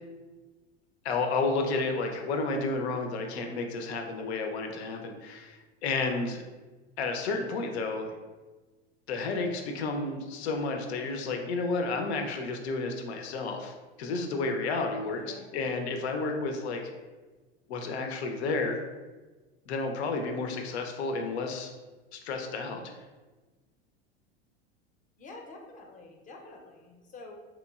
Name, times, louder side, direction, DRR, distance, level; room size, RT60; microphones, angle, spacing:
voice 1, 1.0-6.4 7.0-8.1 9.1-15.2 15.5-16.8 17.7-18.8 19.7-21.7 22.1-22.8, left 3 dB, 75° left, 4 dB, 0.6 m, -31 dB
voice 2, 15.1-15.7 25.2-27.4, left 3 dB, 25° left, 2 dB, 0.6 m, -48 dB
3.6 x 3.0 x 2.3 m, 1.3 s
hypercardioid pair, 95°, 32 cm